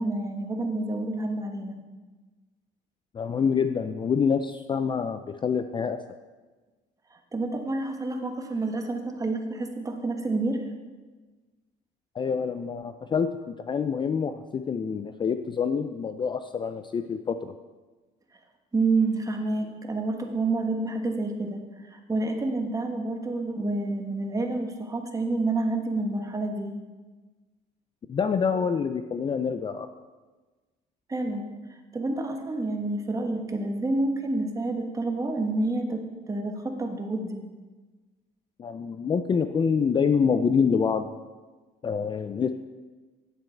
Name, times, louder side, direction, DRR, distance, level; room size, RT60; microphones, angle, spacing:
voice 1, 0.0-1.7 7.3-10.6 18.7-26.8 31.1-31.4 31.9-37.5, right 2 dB, 20° right, 4 dB, 1.2 m, -28 dB
voice 2, 3.1-6.0 12.2-17.5 28.1-29.9 38.6-41.1 41.8-42.5, left 6 dB, 30° left, 9 dB, 0.4 m, -26 dB
9.4 x 7.7 x 4.4 m, 1.3 s
cardioid pair, 110°, 17 cm